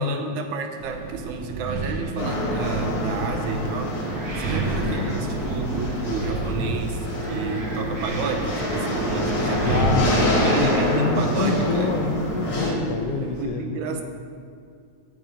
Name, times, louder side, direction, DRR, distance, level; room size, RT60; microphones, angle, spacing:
voice 1, 0.0-9.8 10.2-12.0 13.2-14.0, right 4 dB, 80° right, 4 dB, 2.3 m, -31 dB
Wind, 0.8-13.4, right 2 dB, 45° right, 1.9 m, -30 dB
sound 1, 2.2-12.7, equal, 45° left, 2.6 m, -27 dB
voice 2, 4.8-5.2 9.5-14.0, left 5 dB, 80° left, 4 dB, 1.3 m, -27 dB
17.0 x 6.0 x 5.1 m, 2.3 s
omnidirectional pair, 3.4 m